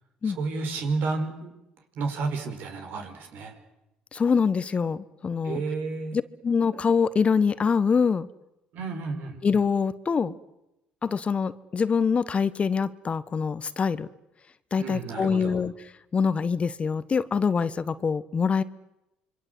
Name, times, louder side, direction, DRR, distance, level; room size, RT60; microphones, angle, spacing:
voice 1, 0.2-1.5 2.0-3.6 5.4-6.2 8.7-9.4 14.8-15.6, right 4 dB, 65° right, 5 dB, 5.2 m, -31 dB
voice 2, 4.1-5.6 6.1-8.3 9.4-10.3 11.0-14.1 14.7-15.7 16.1-18.6, left 5 dB, 35° left, 15 dB, 1.3 m, -24 dB
26.5 x 23.5 x 8.0 m, 0.91 s
supercardioid pair, 65°, 3 cm